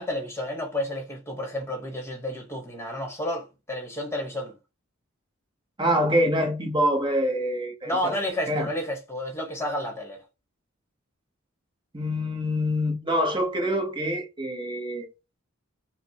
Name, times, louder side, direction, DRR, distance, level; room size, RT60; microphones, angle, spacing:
voice 1, 0.0-4.5 7.8-10.2, left 1 dB, 10° left, 1.0 m, -31 dB
voice 2, 5.8-8.2 8.5-8.7 11.9-15.1, equal, 20° right, 0.8 m, -25 dB
5.0 x 2.0 x 2.8 m
head